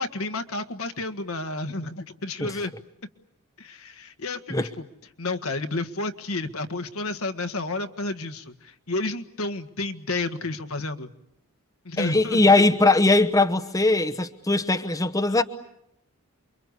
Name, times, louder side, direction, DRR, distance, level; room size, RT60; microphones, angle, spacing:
voice 1, 0.0-2.7 3.6-4.8 5.2-11.1 11.8-12.5, left 2 dB, 70° left, 8 dB, 1.7 m, -31 dB
voice 2, 12.0-15.4, left 2 dB, 15° left, 8 dB, 1.0 m, -20 dB
28.5 x 24.0 x 8.2 m, 0.78 s
head